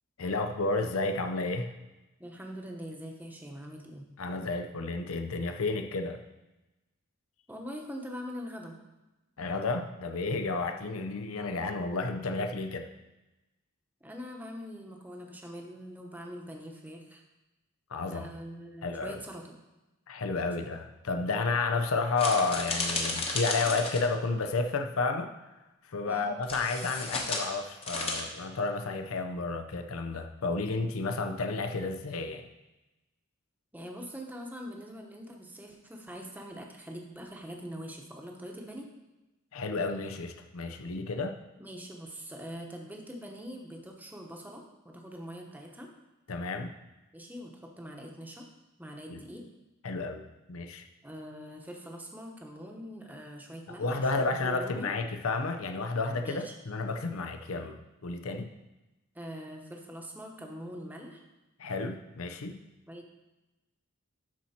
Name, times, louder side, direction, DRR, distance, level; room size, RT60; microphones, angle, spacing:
voice 1, 0.2-1.7 4.2-6.2 9.4-12.9 17.9-18.3 18.8-19.2 20.1-25.3 25.9-32.5 39.5-41.4 46.3-46.7 49.1-49.2 49.8-50.8 53.7-58.5 61.6-62.6, left 3 dB, 75° left, 6 dB, 0.7 m, -31 dB
voice 2, 2.2-4.1 7.5-8.8 14.0-17.2 18.1-19.5 26.1-26.3 33.7-38.9 41.6-45.9 47.1-48.5 48.8-49.4 51.0-53.9 54.1-54.9 56.2-56.6 59.1-61.2 62.9-63.2, equal, 10° right, 1 dB, 1.0 m, -43 dB
typewriter (psací stroj), 22.2-24.1 26.4-27.5 27.8-28.2, left 3 dB, 30° left, 1.1 m, -33 dB
12.0 x 4.3 x 4.3 m, 1.0 s
head